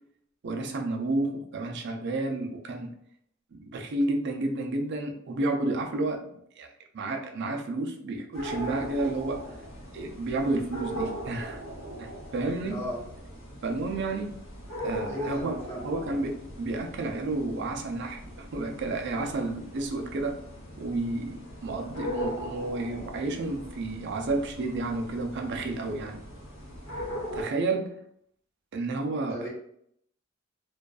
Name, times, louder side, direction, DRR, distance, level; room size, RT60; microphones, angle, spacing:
voice 1, 0.4-2.9 3.5-6.7 6.9-9.4 9.9-11.6 12.0-12.8 13.6-14.3 14.8-15.6 15.8-20.4 20.8-26.2 27.3-28.0 28.7-29.4, right 2 dB, 60° right, 4 dB, 0.4 m, -31 dB
sound 1, 8.3-27.4, equal, 75° left, 1.0 m, -39 dB
voice 2, 12.7-13.1 15.1-15.9 29.3-29.5, equal, 15° left, -7 dB, 0.9 m, -35 dB
2.5 x 2.2 x 2.3 m, 0.69 s
head